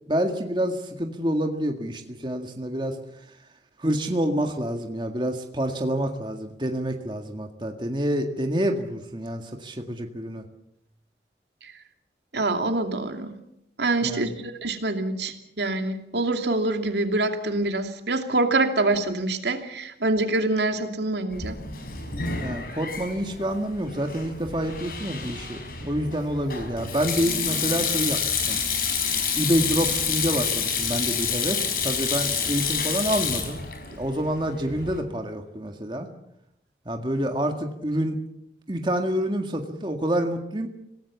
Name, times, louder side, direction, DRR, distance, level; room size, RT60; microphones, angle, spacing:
voice 1, 0.1-3.0 3.8-10.5 14.0-14.4 22.4-28.2 28.5-28.6 29.3-33.6 33.9-36.1 36.9-38.2 38.7-40.7, equal, 25° right, 4 dB, 1.9 m, -27 dB
voice 2, 12.3-13.4 13.8-21.5, right 2 dB, 75° right, 6 dB, 2.7 m, -25 dB
Sink (filling or washing), 21.3-35.0, left 6 dB, 55° left, 4.8 m, -28 dB
27.0 x 18.5 x 7.2 m, 0.78 s
head